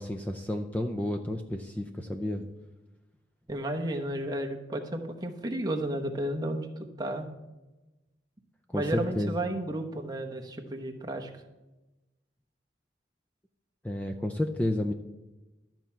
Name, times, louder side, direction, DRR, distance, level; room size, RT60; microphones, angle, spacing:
voice 1, 0.0-2.4 8.7-9.3 13.8-14.9, left 1 dB, 10° left, 6 dB, 0.4 m, -31 dB
voice 2, 3.5-7.3 8.7-11.3, right 1 dB, 20° right, 3 dB, 0.9 m, -33 dB
12.5 x 4.5 x 7.3 m, 1.1 s
head